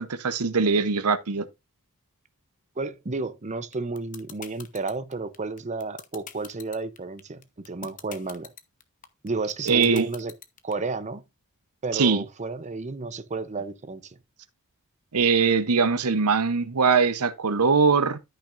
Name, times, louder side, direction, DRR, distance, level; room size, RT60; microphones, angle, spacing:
voice 1, 0.0-1.5 9.7-10.0 11.9-12.2 15.1-18.2, right 5 dB, 90° right, 0.8 m, -21 dB
voice 2, 2.8-8.5 9.2-10.3 10.6-11.2 11.8-14.2, right 3 dB, 35° right, 0.7 m, -32 dB
sound 1, 3.7-10.7, left 8 dB, 35° left, 0.9 m, -42 dB
13.5 x 5.8 x 2.5 m
head